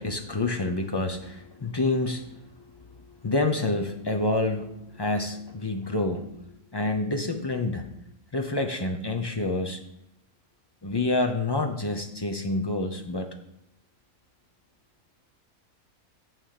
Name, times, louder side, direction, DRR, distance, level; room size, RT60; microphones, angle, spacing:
voice 1, 0.0-7.9 8.3-9.8 10.8-13.3, left 2 dB, 40° left, 4 dB, 0.3 m, -28 dB
7.3 x 6.1 x 6.6 m, 0.80 s
omnidirectional pair, 1.6 m